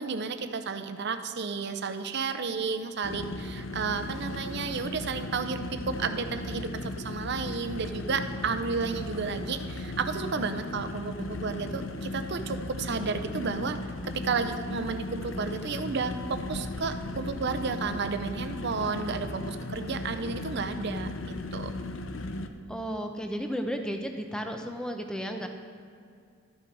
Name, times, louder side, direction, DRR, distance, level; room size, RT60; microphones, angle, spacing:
voice 1, 0.0-13.8 14.1-21.7, right 4 dB, 55° right, 9 dB, 0.6 m, -32 dB
sound 1, 3.0-22.5, left 2 dB, 65° left, 0.6 m, -36 dB
voice 2, 22.7-25.5, equal, 5° left, 4 dB, 0.6 m, -33 dB
12.5 x 6.1 x 4.7 m, 2.4 s
head